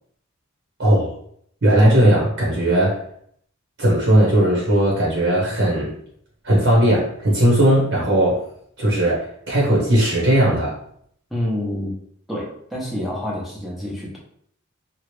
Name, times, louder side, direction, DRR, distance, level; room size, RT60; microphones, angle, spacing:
voice 1, 0.8-1.1 1.6-3.0 3.8-6.0 6.4-8.4 8.8-10.8, right 1 dB, 60° right, -4 dB, 1.0 m, -17 dB
voice 2, 11.3-12.0 12.3-14.2, left 1 dB, ahead, -5 dB, 0.7 m, -27 dB
3.0 x 2.3 x 3.2 m, 0.65 s
head